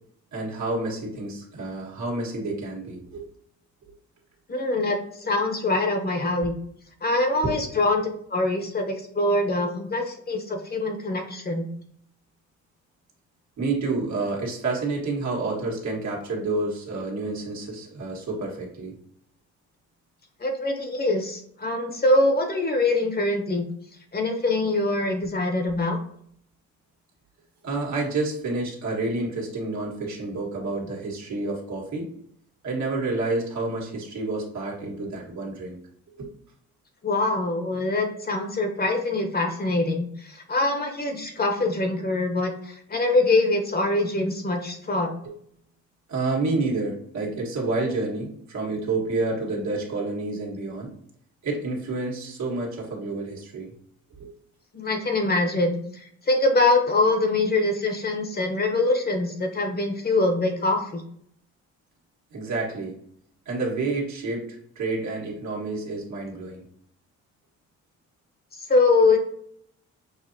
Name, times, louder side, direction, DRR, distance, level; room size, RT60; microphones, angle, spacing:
voice 1, 0.3-3.3 7.4-7.7 13.6-18.9 27.6-32.1 32.6-35.8 36.2-36.3 45.2-45.3 46.1-50.9 51.4-53.7 54.1-54.3 57.1-57.2 62.3-63.0 63.4-66.6, right 3 dB, 65° right, -2 dB, 1.6 m, -29 dB
voice 2, 4.5-6.5 7.0-11.7 20.4-23.6 24.1-26.0 37.0-45.1 54.7-61.0 68.6-69.2, left 2 dB, 30° left, 4 dB, 1.0 m, -24 dB
6.4 x 2.8 x 2.8 m, 0.66 s
cardioid pair, 90°, 30 cm